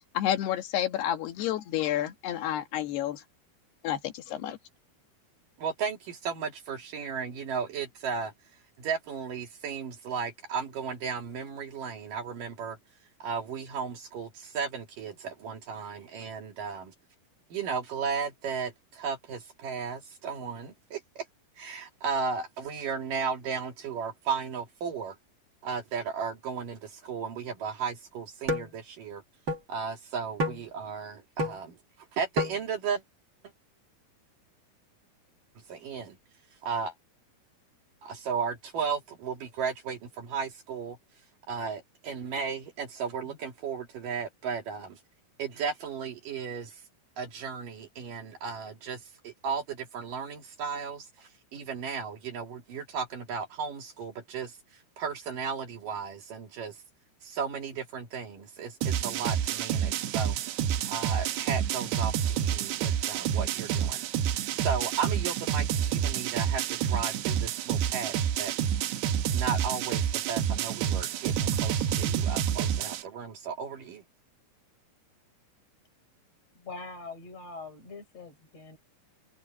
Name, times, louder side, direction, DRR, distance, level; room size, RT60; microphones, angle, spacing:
voice 1, 0.2-3.2 3.8-4.6, left 11 dB, 75° left, 3.7 m, -30 dB
voice 2, 5.6-8.3 8.8-12.8 13.2-16.9 17.5-21.3 21.6-25.2 25.6-29.2 29.7-31.8 32.1-33.0 35.7-36.2 36.6-36.9 38.0-41.0 41.5-45.0 45.4-46.8 47.2-56.8 57.2-60.4 60.9-64.0 64.5-68.8 69.3-74.0, right 6 dB, 55° right, 3.6 m, -35 dB
sound 1, 28.5-28.7 29.5-29.6 30.4-30.6 31.4-31.6 32.4-32.6, equal, 40° right, 1.9 m, -28 dB
sound 2, 58.8-73.0, right 9 dB, 80° right, 3.3 m, -28 dB
voice 3, 76.6-78.8, left 3 dB, 40° left, 5.5 m, -43 dB
omnidirectional pair, 4.8 m